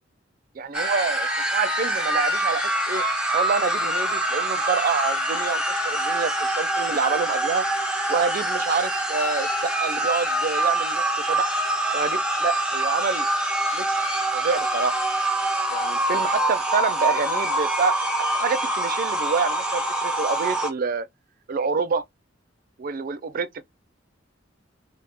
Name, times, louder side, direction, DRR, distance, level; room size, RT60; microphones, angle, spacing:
voice 1, 0.6-3.0 3.3-7.6 8.1-11.6 11.9-13.3 13.7-14.0 14.3-15.0 15.7-17.9 18.4-21.1 21.5-22.0 22.8-23.6, right 5 dB, 50° right, 0.4 m, -27 dB
sound 1, 0.7-20.7, right 1 dB, 5° right, 0.7 m, -25 dB
2.7 x 2.4 x 3.3 m
head